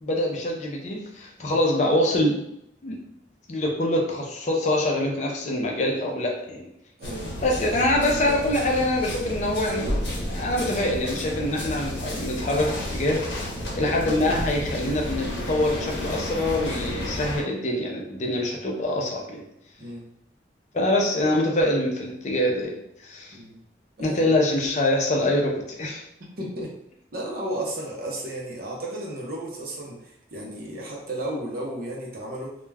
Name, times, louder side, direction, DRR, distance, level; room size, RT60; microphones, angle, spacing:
voice 1, 0.0-2.5 2.8-3.0 3.5-6.7 7.4-9.9 10.3-13.4 13.7-19.4 20.7-23.4 24.0-26.0, left 1 dB, 40° left, 0 dB, 0.4 m, -25 dB
sound 1, 7.0-17.4, equal, 75° left, 0.8 m, -31 dB
voice 2, 7.0-7.3 19.8-20.0 23.3-23.6 24.0-24.3 26.4-26.7 27.1-32.6, right 1 dB, 50° right, -2 dB, 0.7 m, -33 dB
2.2 x 2.2 x 3.3 m, 0.77 s
head